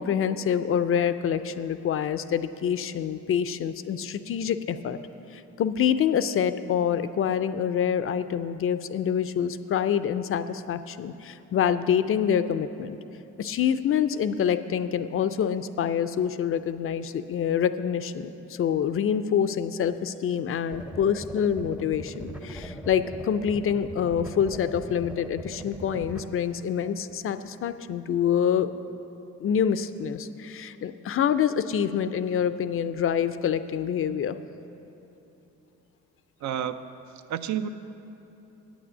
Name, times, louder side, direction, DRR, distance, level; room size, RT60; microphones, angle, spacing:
voice 1, 0.0-5.0 5.3-13.0 13.4-28.7 29.4-34.4, left 8 dB, 45° left, 12 dB, 0.4 m, -26 dB
sound 1, 20.7-26.3, right 1 dB, 5° right, 0.5 m, -40 dB
voice 2, 36.4-36.9 37.3-37.7, right 9 dB, 70° right, 11 dB, 0.5 m, -30 dB
8.7 x 6.1 x 8.1 m, 3.0 s
cardioid pair, 90°, 30 cm